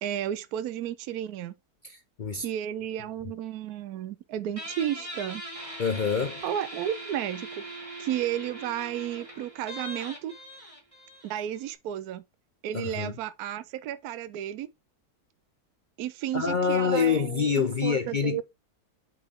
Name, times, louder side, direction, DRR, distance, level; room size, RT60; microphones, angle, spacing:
voice 1, 0.0-1.5 2.4-5.4 6.4-7.7 8.0-10.3 11.2-12.2 12.6-14.7 16.0-18.4, right 11 dB, 75° right, 1.1 m, -33 dB
voice 2, 1.8-2.5 5.8-6.4 12.7-13.1 16.3-18.4, left 6 dB, 65° left, 0.4 m, -26 dB
Guitar, 4.6-11.7, right 1 dB, 20° right, 3.2 m, -41 dB
8.4 x 4.3 x 3.6 m
omnidirectional pair, 1.7 m